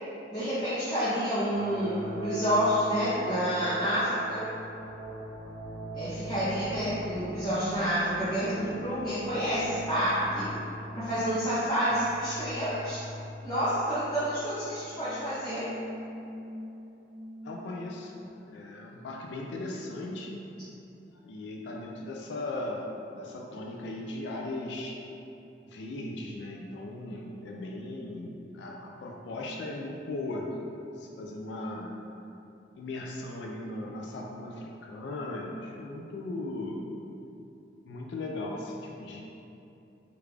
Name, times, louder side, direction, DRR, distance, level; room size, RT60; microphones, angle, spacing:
voice 1, 0.3-4.4 5.9-10.5 10.9-13.0 13.4-15.7, equal, 20° left, -15 dB, 0.7 m, -29 dB
sound 1, 1.5-18.3, right 1 dB, 55° right, 0.9 m, -41 dB
voice 2, 17.4-18.1 18.4-20.5 21.2-25.0 25.6-30.6 31.0-31.9 32.8-36.9 37.8-39.2, left 2 dB, 75° left, -1 dB, 0.3 m, -38 dB
3.3 x 2.4 x 3.2 m, 2.8 s
head